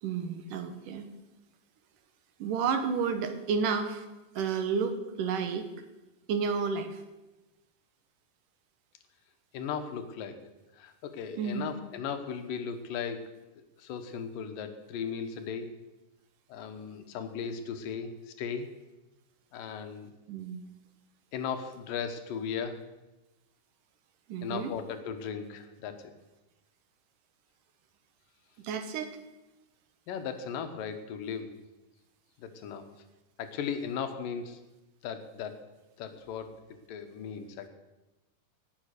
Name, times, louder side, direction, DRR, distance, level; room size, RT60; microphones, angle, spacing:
voice 1, 0.0-1.1 2.4-4.1 4.4-5.7 6.3-7.0 11.4-11.7 20.3-20.6 24.3-24.7 28.6-29.2, right 6 dB, 75° right, 8 dB, 2.7 m, -31 dB
voice 2, 9.5-10.4 10.8-13.2 13.6-15.7 16.5-18.1 18.4-18.7 19.5-20.1 21.3-22.8 24.4-26.0 30.1-31.5 32.4-32.9 33.4-34.6 35.0-35.6 36.0-36.5 36.9-37.7, left 7 dB, 80° left, 8 dB, 2.8 m, -37 dB
18.0 x 7.6 x 6.6 m, 1.0 s
omnidirectional pair, 3.9 m